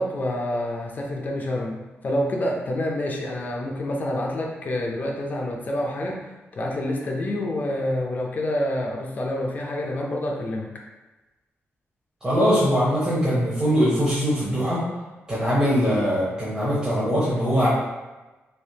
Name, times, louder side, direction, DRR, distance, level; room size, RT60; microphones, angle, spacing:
voice 1, 0.0-1.8 2.0-10.7, left 1 dB, 40° left, -1 dB, 0.4 m, -27 dB
voice 2, 12.2-14.8 15.3-17.7, equal, 15° right, -9 dB, 0.7 m, -21 dB
3.3 x 2.7 x 2.7 m, 1.1 s
wide cardioid pair, 170°, 5 cm